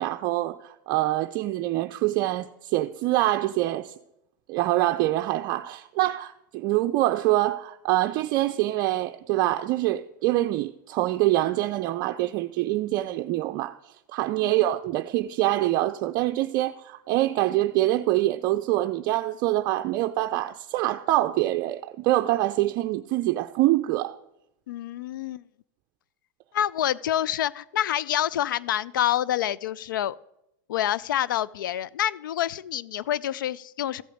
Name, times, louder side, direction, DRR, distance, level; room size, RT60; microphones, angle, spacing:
voice 1, 0.0-3.9 4.5-13.8 14.1-24.2, right 16 dB, 50° right, 0.5 m, -25 dB
voice 2, 24.7-25.4 26.5-30.2 30.7-34.0, left 11 dB, 85° left, 0.4 m, -27 dB
14.0 x 5.1 x 9.2 m
hypercardioid pair, 115°, 10 cm